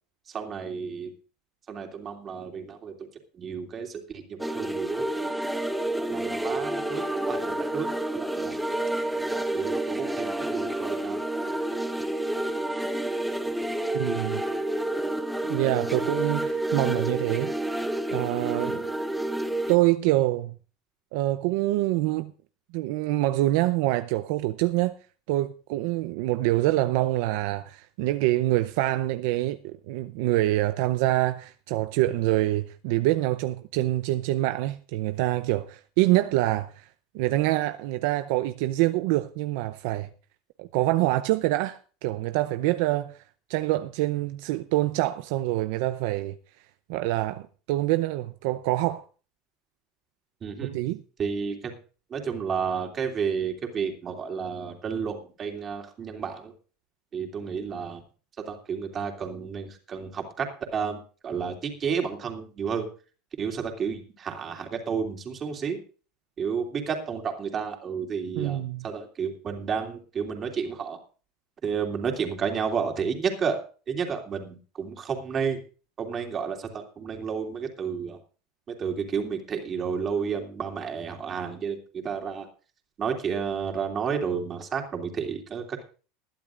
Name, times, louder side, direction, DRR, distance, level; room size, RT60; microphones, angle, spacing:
voice 1, 0.3-1.1 1.7-2.9 3.4-5.3 6.0-8.6 9.3-11.2 50.4-50.8 51.2-51.7 52.1-56.5 57.1-58.0 58.4-60.5 60.7-62.9 63.4-65.8 66.4-71.0 71.6-73.6 73.9-75.6 76.0-78.2 78.7-82.5 83.0-85.8, right 6 dB, 25° right, 2.9 m, -31 dB
sound 1, 4.4-19.8, right 1 dB, ahead, 1.2 m, -29 dB
voice 2, 13.9-14.4 15.5-17.5 18.1-18.8 19.7-20.5 21.1-22.3 22.7-24.9 25.3-36.9 37.1-40.1 40.6-43.2 43.5-46.4 46.9-49.0 50.7-51.0 68.4-68.9, right 16 dB, 70° right, 0.6 m, -25 dB
21.0 x 12.0 x 2.5 m
supercardioid pair, 145°, 0 cm